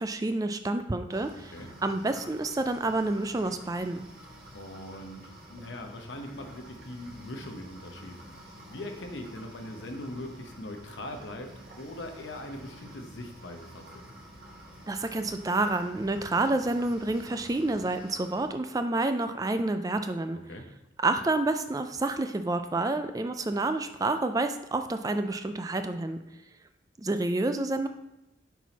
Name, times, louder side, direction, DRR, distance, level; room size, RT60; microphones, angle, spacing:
voice 1, 0.0-1.5 1.8-4.0 14.9-20.4 21.0-26.2 27.0-27.9, right 2 dB, 20° right, 8 dB, 0.3 m, -29 dB
sound 1, 1.1-18.5, right 1 dB, 50° right, 1.3 m, -49 dB
voice 2, 4.5-8.2 8.7-14.0 20.5-20.7, left 1 dB, 75° left, 4 dB, 0.9 m, -41 dB
6.0 x 4.6 x 4.0 m, 0.95 s
head